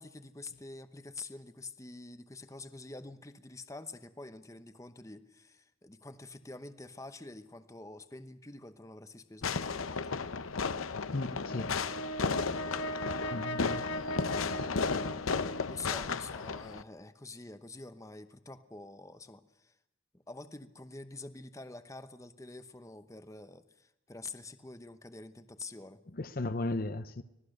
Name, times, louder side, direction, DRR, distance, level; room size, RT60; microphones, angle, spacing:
voice 1, 0.0-10.1 15.7-19.7 20.3-26.0, left 3 dB, 15° left, 0.9 m, -47 dB
Fireworks, 9.4-16.8, left 5 dB, 90° left, 0.8 m, -34 dB
voice 2, 11.1-11.7 13.3-13.9 26.1-27.2, left 2 dB, 45° left, 0.8 m, -35 dB
Brass instrument, 11.4-15.8, right 1 dB, 65° left, 1.7 m, -39 dB
25.5 x 18.5 x 6.6 m
head